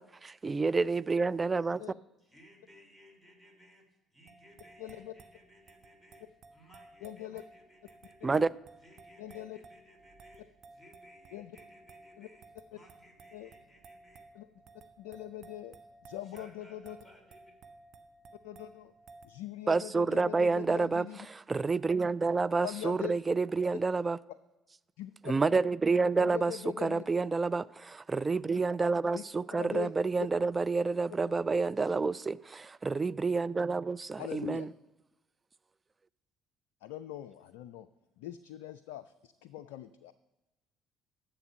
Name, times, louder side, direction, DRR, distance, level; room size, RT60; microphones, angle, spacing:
voice 1, 0.0-1.8 8.2-8.5 19.7-24.2 25.3-34.7, right 4 dB, 25° right, 0.3 m, -29 dB
voice 2, 2.2-8.4 8.8-14.3 16.2-17.6, equal, 5° right, 2.9 m, -60 dB
sound 1, 4.3-19.3, right 3 dB, 50° right, 1.0 m, -57 dB
voice 3, 4.8-5.1 7.0-7.4 9.2-9.6 11.3-11.6 12.2-12.3 13.3-13.5 14.3-14.5 15.0-15.7 16.0-17.0 18.4-18.9 19.2-21.3 22.6-23.1 25.0-25.3 26.2-27.0 29.1-29.2 29.6-29.9 30.2-30.3 34.2-34.7 36.8-37.9 38.2-40.1, left 12 dB, 70° left, 0.3 m, -42 dB
10.5 x 7.0 x 5.6 m
figure-of-eight pair, 50°, 0 cm